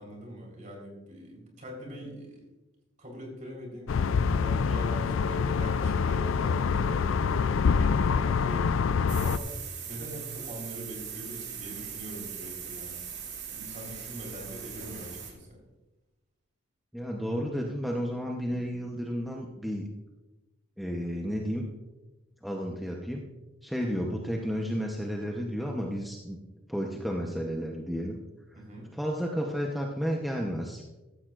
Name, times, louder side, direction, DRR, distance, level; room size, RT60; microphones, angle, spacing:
voice 1, 0.0-2.4 3.0-8.7 9.2-9.5 9.9-13.0 13.5-15.6 23.8-23.9 28.6-28.9, equal, 40° right, 1 dB, 4.1 m, -42 dB
sound 1, 3.9-9.4, left 5 dB, 75° left, 0.4 m, -26 dB
sound 2, 9.1-15.3, right 7 dB, 60° right, 2.4 m, -40 dB
voice 2, 16.9-19.8 20.8-21.7 22.4-23.2 23.6-26.4 26.7-28.2 28.9-30.8, equal, ahead, -1 dB, 0.9 m, -32 dB
15.5 x 13.0 x 2.5 m, 1.1 s
head